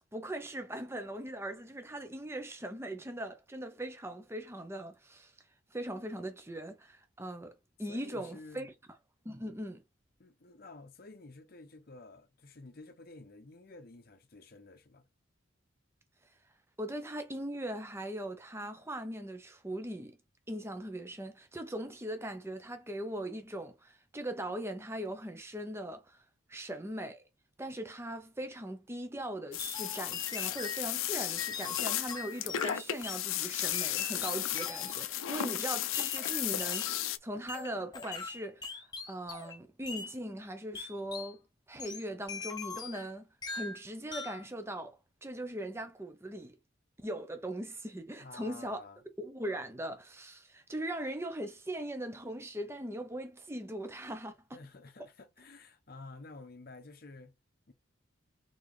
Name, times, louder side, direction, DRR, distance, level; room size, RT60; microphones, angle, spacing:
voice 1, 0.1-5.3 5.7-8.7 9.2-9.8 16.8-20.2 20.5-26.2 26.5-27.2 27.6-41.4 41.7-46.6 47.0-48.8 49.2-54.4, right 1 dB, 10° right, 0.7 m, -40 dB
voice 2, 7.9-8.7 10.2-15.1 26.5-26.6 48.2-49.0 54.5-57.3 57.7-57.8, left 3 dB, 50° left, 0.7 m, -51 dB
sound 1, 29.5-37.2, left 12 dB, 85° left, 0.5 m, -34 dB
sound 2, 29.6-30.8 31.4-33.2 33.7-35.1 35.9-37.0 37.5-39.6 39.9-40.1 40.7-41.3 41.8-43.1 43.4-43.8 44.1-44.5, left 4 dB, 20° left, 0.7 m, -41 dB
4.0 x 3.9 x 3.2 m
head